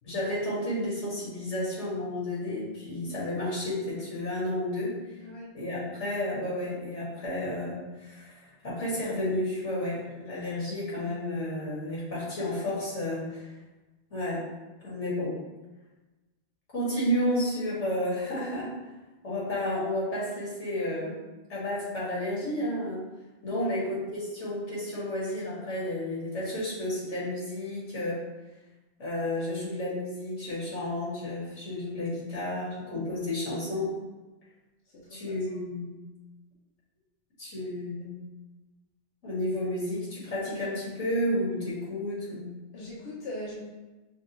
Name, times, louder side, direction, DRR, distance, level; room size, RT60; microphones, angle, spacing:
voice 1, 0.0-5.0 5.5-13.5 14.1-14.4 14.8-15.4 16.7-18.7 19.2-21.2 21.5-23.1 23.4-28.2 29.0-33.9 35.1-35.9 37.4-38.2 39.2-42.5, left 1 dB, 85° left, -7 dB, 2.1 m, -31 dB
voice 2, 34.9-35.6 42.7-43.6, left 1 dB, 60° left, -5 dB, 1.0 m, -41 dB
5.9 x 2.4 x 3.0 m, 1.1 s
omnidirectional pair, 1.2 m